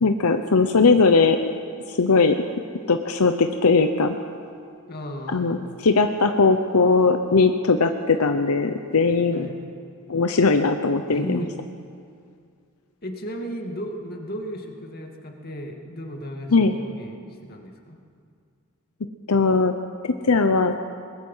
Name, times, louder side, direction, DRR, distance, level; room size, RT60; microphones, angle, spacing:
voice 1, 0.0-1.4 1.9-2.4 2.9-4.1 5.3-5.6 5.8-9.4 10.1-11.4 16.5-16.7 19.3-19.7 20.0-20.7, left 4 dB, 85° left, 7 dB, 0.8 m, -19 dB
voice 2, 4.9-5.7 9.3-9.5 11.1-11.5 13.0-18.0, equal, 45° left, 2 dB, 2.2 m, -34 dB
22.5 x 20.5 x 5.6 m, 2.2 s
head